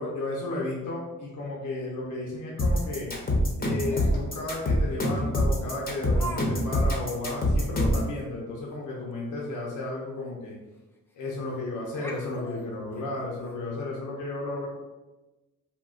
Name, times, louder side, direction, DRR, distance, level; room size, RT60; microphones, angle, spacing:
voice 1, 0.0-3.1 3.6-10.6 11.1-14.7, left 2 dB, 60° left, -3 dB, 0.7 m, -33 dB
sound 1, 2.6-8.1, left 1 dB, 25° left, 0.7 m, -24 dB
Laughter, 3.9-4.3 5.1-5.2 6.1-6.4 6.7-6.8 7.3-7.4 7.8-7.9 9.9-10.0 10.3-10.4 11.3-11.6 11.9-13.5, right 2 dB, 5° left, 0.3 m, -40 dB
3.6 x 2.3 x 2.5 m, 1.1 s
cardioid pair, 105°, 35 cm